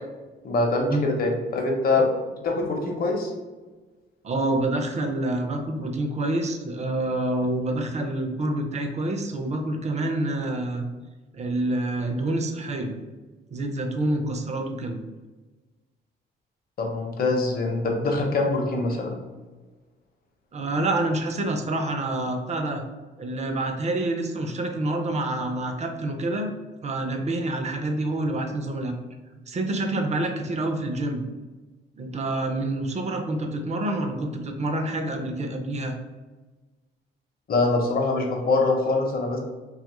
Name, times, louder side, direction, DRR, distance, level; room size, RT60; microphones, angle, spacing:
voice 1, 0.4-2.1 2.4-3.3 16.8-19.1 37.5-39.4, left 3 dB, 50° left, 1 dB, 0.7 m, -24 dB
voice 2, 4.2-10.9 11.3-12.9 13.5-15.0 20.5-22.8 23.2-26.5 26.8-28.9 29.3-31.2 32.0-35.9, right 2 dB, 35° right, 4 dB, 0.5 m, -27 dB
2.8 x 2.4 x 2.9 m, 1.3 s
cardioid pair, 90°, 20 cm